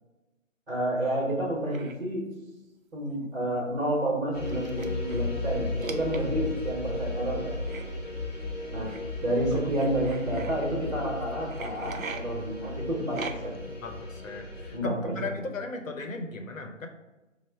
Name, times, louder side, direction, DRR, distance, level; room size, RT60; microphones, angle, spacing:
voice 1, 0.7-2.3 2.9-7.5 8.7-8.9 9.2-13.6 14.7-15.4, right 1 dB, 45° right, -2 dB, 0.9 m, -30 dB
sound 1, 1.7-1.9 3.1-3.2 3.6-3.7 4.4-5.3 5.8-6.6 7.7-7.8 8.9-9.0 9.7-10.5 11.5-12.2 13.1-13.6, right 5 dB, 80° right, 0.5 m, -39 dB
sound 2, 4.3-14.8, left 2 dB, 30° left, 0.6 m, -35 dB
voice 2, 13.8-16.9, left 2 dB, 75° left, 4 dB, 0.7 m, -36 dB
4.3 x 2.1 x 3.3 m, 1.1 s
figure-of-eight pair, 150°, 40 cm